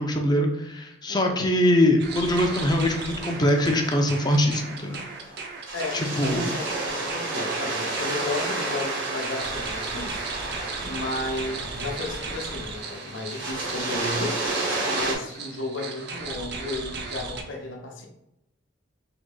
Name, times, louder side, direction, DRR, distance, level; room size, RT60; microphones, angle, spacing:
voice 1, 0.0-5.0 5.9-6.5, left 1 dB, 20° left, 3 dB, 0.5 m, -23 dB
voice 2, 1.1-1.4 5.7-10.2 10.8-14.4 14.8-18.1, left 2 dB, 80° left, 2 dB, 0.8 m, -33 dB
sound 1, 2.0-17.4, right 4 dB, 55° right, 0.6 m, -37 dB
sound 2, 2.2-15.1, right 2 dB, 75° right, 1.3 m, -32 dB
3.8 x 3.0 x 3.8 m, 0.86 s
head